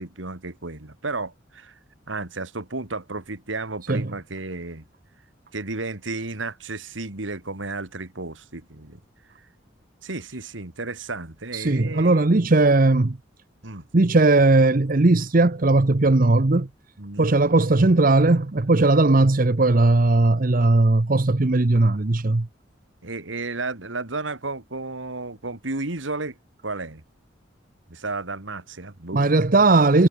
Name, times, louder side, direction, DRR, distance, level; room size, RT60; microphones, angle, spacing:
voice 1, 0.0-1.8 2.1-4.8 5.5-9.0 10.0-12.3 13.6-13.8 17.0-17.3 23.0-26.4 26.6-27.0 27.9-29.3, right 3 dB, 80° right, 2.4 m, -33 dB
voice 2, 11.5-13.2 13.9-16.7 17.2-22.5 29.1-30.1, right 2 dB, 45° right, 0.8 m, -18 dB
head